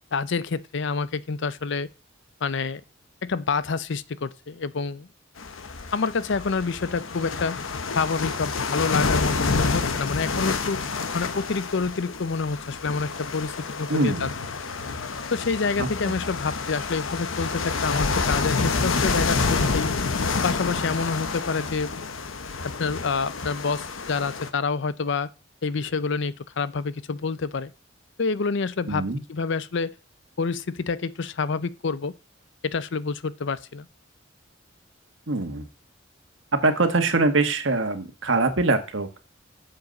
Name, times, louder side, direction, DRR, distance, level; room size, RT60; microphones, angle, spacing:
voice 1, 0.1-1.9 2.4-2.8 3.2-5.1 5.9-7.6 7.9-10.8 11.1-14.3 15.3-19.9 20.4-21.9 22.6-25.3 25.6-27.7 28.2-29.0 29.3-29.9 30.4-32.1 32.6-33.9, left 4 dB, 65° left, 0.6 m, -27 dB
sound 1, 5.4-24.5, left 4 dB, 85° left, 1.0 m, -28 dB
voice 2, 13.9-14.3 15.8-16.1 28.9-29.2 35.3-35.7 36.6-39.2, right 3 dB, 70° right, 1.5 m, -23 dB
7.8 x 7.2 x 5.3 m
head